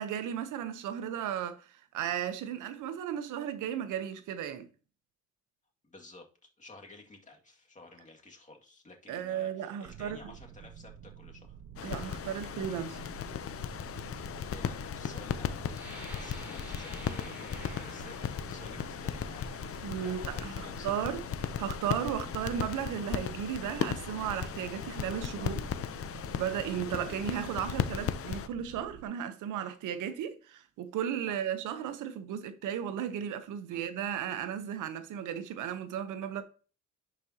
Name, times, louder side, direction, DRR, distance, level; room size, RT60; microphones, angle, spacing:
voice 1, 0.0-4.7 9.1-10.2 11.8-13.0 19.8-20.5 20.8-21.2 21.6-25.6 26.4-36.4, right 9 dB, 85° right, 0.9 m, -35 dB
voice 2, 5.8-6.3 6.6-11.6 14.5-21.1 22.2-22.3 25.4-25.7 31.3-31.4 33.7-33.8, left 2 dB, 25° left, 2.1 m, -52 dB
sound 1, 9.8-29.1, right 9 dB, 45° right, 0.6 m, -50 dB
sound 2, 11.8-28.5, left 8 dB, 50° left, 0.7 m, -37 dB
sound 3, 15.7-21.3 22.0-22.2 22.6-23.1, right 1 dB, 5° right, 4.5 m, -52 dB
10.5 x 5.2 x 2.8 m
cardioid pair, 90°, 30 cm